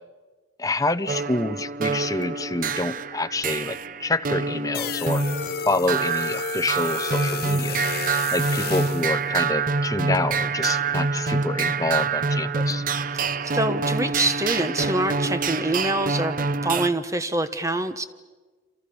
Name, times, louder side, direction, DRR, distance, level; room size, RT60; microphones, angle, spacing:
voice 1, 0.6-5.2 5.6-7.8 8.3-12.8, left 2 dB, 20° left, 11 dB, 0.8 m, -27 dB
sound 1, 1.1-16.9, right 4 dB, 45° right, 0.9 m, -26 dB
sound 2, 4.7-9.1, left 7 dB, 55° left, 1.3 m, -32 dB
voice 2, 13.5-18.0, right 2 dB, 15° right, 10 dB, 1.3 m, -25 dB
28.0 x 27.5 x 7.0 m, 1.3 s
head